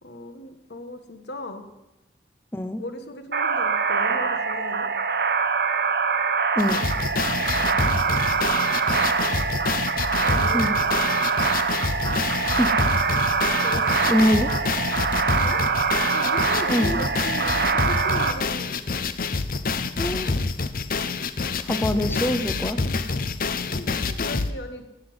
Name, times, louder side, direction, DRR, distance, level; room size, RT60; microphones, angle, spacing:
voice 1, 0.0-1.7 2.8-4.9 8.0-8.7 8.9-9.4 10.2-11.2 13.6-14.2 15.4-15.6 16.1-18.7 23.6-24.8, left 1 dB, 75° left, 8 dB, 1.5 m, -37 dB
sound 1, 3.3-18.3, right 5 dB, 60° right, 1.2 m, -24 dB
sound 2, 6.6-24.5, left 4 dB, 50° left, 0.7 m, -27 dB
voice 2, 14.1-14.5 16.7-17.0 20.0-20.4 21.6-22.8, equal, 10° left, 9 dB, 0.6 m, -23 dB
16.5 x 5.8 x 9.6 m, 0.97 s
head